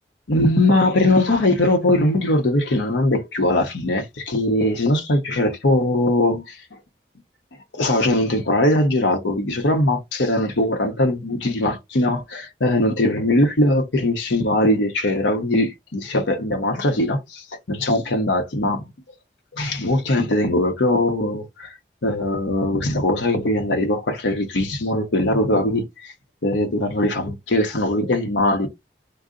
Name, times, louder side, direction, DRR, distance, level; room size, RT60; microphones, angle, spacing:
voice 1, 0.3-6.6 7.7-18.9 19.5-21.8 22.0-26.1 26.4-28.7, left 1 dB, 90° left, 0.8 m, -20 dB
3.8 x 2.1 x 3.7 m
head